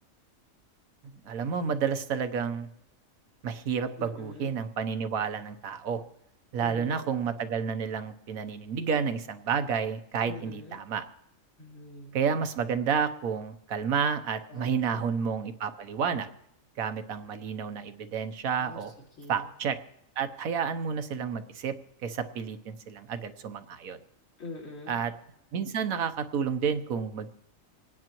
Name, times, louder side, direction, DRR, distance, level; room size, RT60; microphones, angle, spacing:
voice 1, 1.1-2.7 3.4-6.0 6.5-11.0 12.1-16.3 16.8-18.9 19.3-19.8 20.2-21.7 22.0-24.0 24.9-25.1 25.5-27.3, right 6 dB, 85° right, 9 dB, 1.4 m, -30 dB
voice 2, 4.0-4.5 6.6-7.1 10.2-10.8 11.6-12.2 14.5-15.0 18.6-18.8 19.2-19.5 24.4-25.0, left 2 dB, 70° left, -2 dB, 3.9 m, -44 dB
27.0 x 9.8 x 3.0 m, 0.80 s
omnidirectional pair, 1.4 m